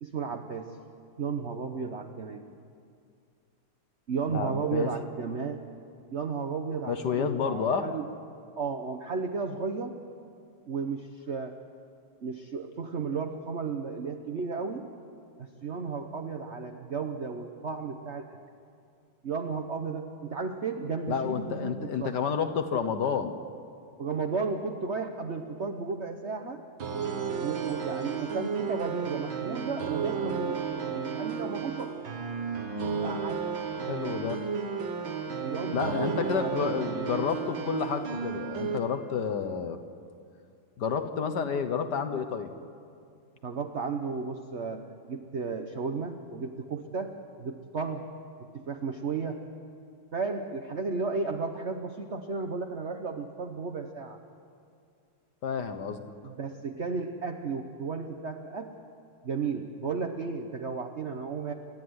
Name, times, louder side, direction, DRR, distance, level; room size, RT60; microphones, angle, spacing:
voice 1, 0.0-0.7 1.2-2.5 4.1-5.7 6.1-8.1 8.6-10.0 10.7-11.6 12.2-14.9 15.4-18.4 19.2-22.1 24.0-26.6 27.4-30.6 31.1-32.0 33.0-33.4 35.5-36.9 43.4-48.0 48.5-49.4 50.1-54.2 56.2-58.7 59.2-61.5, right 5 dB, 45° right, 5 dB, 0.9 m, -34 dB
voice 2, 4.3-4.9 6.9-7.9 21.1-23.4 33.8-34.4 35.7-39.8 40.8-42.5 55.4-56.0, left 6 dB, 55° left, 9 dB, 1.6 m, -30 dB
sound 1, 26.8-38.8, right 6 dB, 65° right, 2.3 m, -33 dB
29.0 x 12.5 x 9.6 m, 2.4 s
omnidirectional pair, 2.4 m